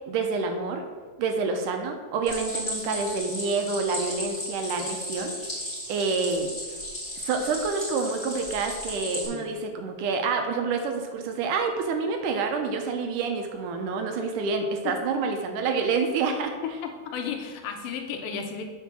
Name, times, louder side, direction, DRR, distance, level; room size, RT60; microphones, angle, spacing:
voice 1, 0.1-0.9 1.2-5.4 5.9-6.8 7.2-16.5, right 4 dB, 75° right, 5 dB, 2.2 m, -28 dB
Stream, 2.3-9.3, left 1 dB, 15° left, 2.3 m, -35 dB
voice 2, 16.6-18.7, left 6 dB, 85° left, 5 dB, 2.6 m, -34 dB
8.1 x 4.7 x 6.2 m, 1.4 s
omnidirectional pair, 3.9 m